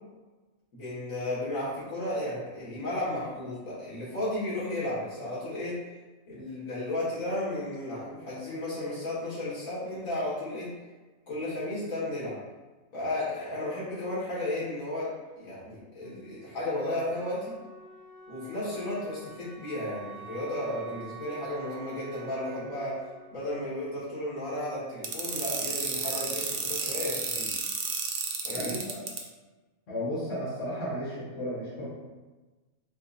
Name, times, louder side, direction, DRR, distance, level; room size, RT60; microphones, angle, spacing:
voice 1, 0.7-5.8 6.3-10.7 11.3-12.4 12.9-17.6 18.3-23.0 23.3-27.5 28.4-28.8, left 1 dB, 70° left, -9 dB, 1.8 m, -34 dB
Wind instrument woodwind instrument, 16.0-24.7, right 6 dB, 85° right, 1.2 m, -48 dB
sound 1, 25.0-29.2, right 5 dB, 65° right, 0.5 m, -31 dB
voice 2, 28.5-29.0 29.9-31.9, equal, 50° left, -9 dB, 1.2 m, -34 dB
4.5 x 2.4 x 2.5 m, 1.2 s
omnidirectional pair, 1.5 m